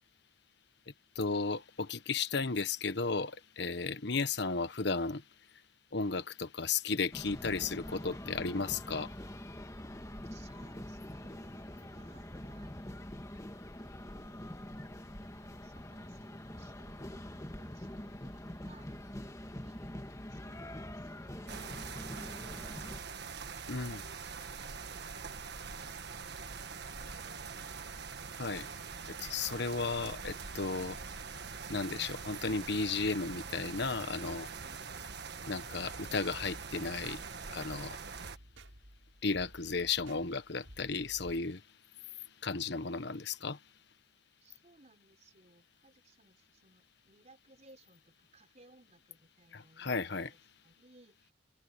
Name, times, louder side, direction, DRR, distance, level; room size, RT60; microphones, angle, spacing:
voice 1, 1.2-5.2 5.9-9.1 23.7-24.0 28.4-28.7 29.2-31.0 31.7-34.5 35.5-37.2 37.5-38.0 39.2-41.6 42.4-43.6 49.5-50.3, left 4 dB, 60° left, 1.3 m, -34 dB
sound 1, 7.1-23.0, left 1 dB, 15° left, 1.9 m, -45 dB
voice 2, 10.3-13.5 13.8-14.7 15.4-18.9 19.4-28.8 44.4-51.3, right 2 dB, 35° right, 5.0 m, -64 dB
sound 2, 21.5-38.4, right 5 dB, 60° right, 1.5 m, -44 dB
sound 3, 36.2-41.4, right 1 dB, 80° right, 6.4 m, -55 dB
head